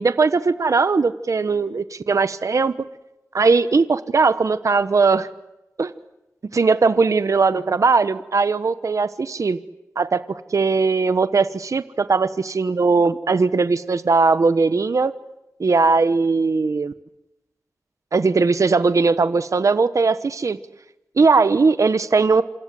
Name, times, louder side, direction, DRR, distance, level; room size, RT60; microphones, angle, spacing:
voice 1, 0.0-2.7 3.3-5.3 5.8-5.9 6.5-9.6 10.0-15.1 15.6-16.9 18.1-20.6 21.2-22.4, right 4 dB, 65° right, 12 dB, 1.2 m, -19 dB
28.0 x 27.5 x 7.8 m, 0.94 s
wide cardioid pair, 60°, 6 cm